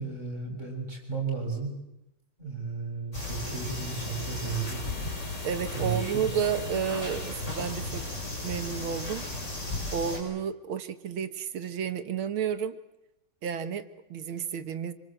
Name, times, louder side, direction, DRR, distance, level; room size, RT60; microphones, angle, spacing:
voice 1, 0.0-1.8 2.4-4.8 5.8-6.3, right 5 dB, 35° right, 2 dB, 7.1 m, -34 dB
sound 1, 3.1-10.2, left 2 dB, 30° left, 7.6 m, -35 dB
voice 2, 5.4-8.1 8.4-9.3 9.9-12.8 13.4-14.9, right 7 dB, 75° right, 10 dB, 2.1 m, -31 dB
26.5 x 25.5 x 7.6 m, 0.91 s
omnidirectional pair, 2.3 m